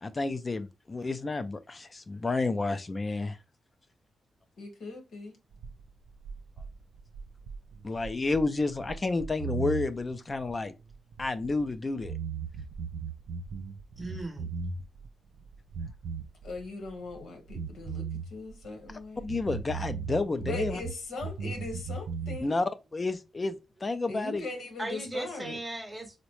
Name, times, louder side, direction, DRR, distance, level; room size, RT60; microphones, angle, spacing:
voice 1, 0.0-3.4 7.8-10.7 11.2-12.1 19.2-20.8 22.4-24.4, left 3 dB, 25° left, 0.3 m, -30 dB
voice 2, 4.6-5.3 16.4-19.3 20.4-22.5 24.1-25.6, left 2 dB, 90° left, 1.1 m, -39 dB
sound 1, 5.5-11.7 12.0-15.1 15.3-17.2 17.5-20.9 21.2-22.4, right 5 dB, 90° right, 0.3 m, -37 dB
voice 3, 14.0-14.5 24.8-26.2, right 1 dB, 10° right, 0.7 m, -37 dB
3.8 x 2.1 x 3.0 m
wide cardioid pair, 150°, 0 cm